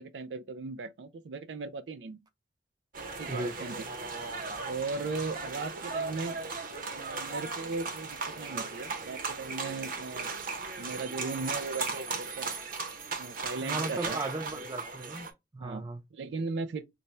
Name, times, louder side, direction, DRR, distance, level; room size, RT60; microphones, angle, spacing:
voice 1, 0.0-2.2 3.2-3.9 4.7-6.4 6.9-10.3 10.8-12.5 13.2-14.2 14.6-14.7 15.6-16.8, right 3 dB, 90° right, 0.4 m, -37 dB
sound 1, 2.9-15.3, right 4 dB, 50° right, 0.7 m, -37 dB
voice 2, 13.6-15.3 15.5-16.0, right 2 dB, 25° right, 0.4 m, -36 dB
4.0 x 2.1 x 3.2 m
head